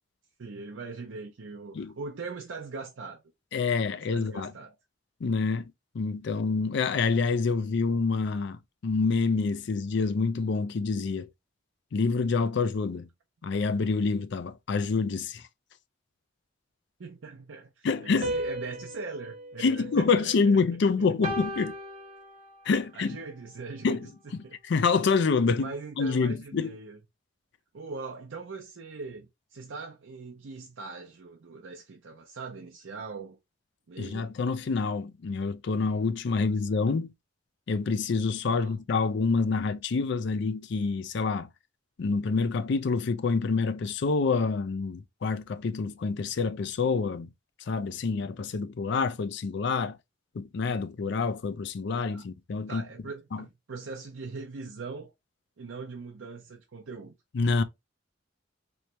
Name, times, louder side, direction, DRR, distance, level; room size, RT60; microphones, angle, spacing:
voice 1, 0.4-3.2 3.9-4.7 17.0-20.5 22.9-24.1 24.4-24.6 25.6-27.0 27.7-33.4 33.9-34.3 36.3-36.8 38.4-38.7 52.1-52.2 52.7-55.1 55.6-57.1, right 4 dB, 90° right, 0.6 m, -41 dB
voice 2, 3.5-4.5 5.2-11.3 11.9-13.1 13.4-15.4 17.8-18.3 19.6-21.8 22.7-23.2 23.8-24.0 24.3-26.7 34.0-37.1 37.7-41.5 42.0-47.3 47.7-50.0 50.3-52.8 53.3-53.4 57.3-57.6, left 4 dB, 65° left, 0.4 m, -27 dB
sound 1, 18.2-20.7 21.2-22.8, equal, 40° right, 1.4 m, -36 dB
3.2 x 3.1 x 2.9 m
head